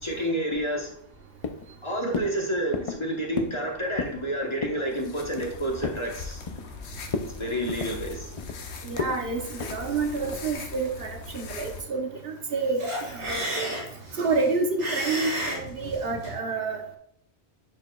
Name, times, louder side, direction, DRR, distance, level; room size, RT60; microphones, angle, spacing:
voice 1, 0.0-0.9 1.8-6.4 7.3-8.4, right 1 dB, 30° left, 0 dB, 1.1 m, -29 dB
sound 1, 0.5-1.2 1.4-1.8 2.1-2.4 2.7-3.0 3.4-3.6 3.9-4.2 4.6-4.8 5.2-6.1 6.5-6.8 7.1-7.3 7.7-8.6 9.0-9.2 9.6-9.8 10.2-10.5, left 4 dB, 50° left, 0.4 m, -33 dB
sound 2, 4.8-11.8, left 4 dB, 80° left, 1.0 m, -41 dB
voice 2, 8.8-13.7 14.1-16.8, right 4 dB, 65° right, 3 dB, 1.1 m, -29 dB
sound 3, 12.8-16.4, equal, 90° right, 2.3 m, -33 dB
10.0 x 5.0 x 2.3 m, 0.67 s
omnidirectional pair, 1.1 m